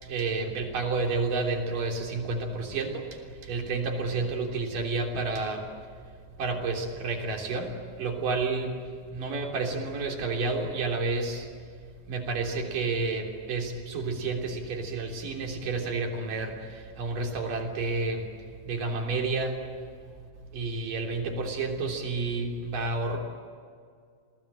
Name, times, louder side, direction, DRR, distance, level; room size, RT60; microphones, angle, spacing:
voice 1, 0.0-5.7 6.4-7.7 8.0-8.8 9.1-11.5 12.1-18.2 18.7-19.6 20.5-23.2, right 3 dB, 75° right, 2 dB, 4.9 m, -30 dB
30.0 x 20.5 x 8.9 m, 2.1 s
omnidirectional pair, 3.9 m